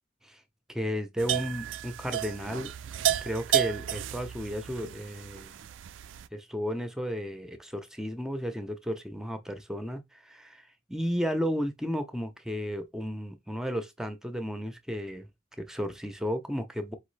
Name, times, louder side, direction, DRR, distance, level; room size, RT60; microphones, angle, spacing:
voice 1, 0.7-2.7 3.2-5.5 6.3-10.6 10.9-15.3 15.6-17.0, equal, 5° right, 0.7 m, -33 dB
sound 1, 1.2-6.3, right 11 dB, 80° right, 0.4 m, -32 dB
4.6 x 3.1 x 3.2 m
head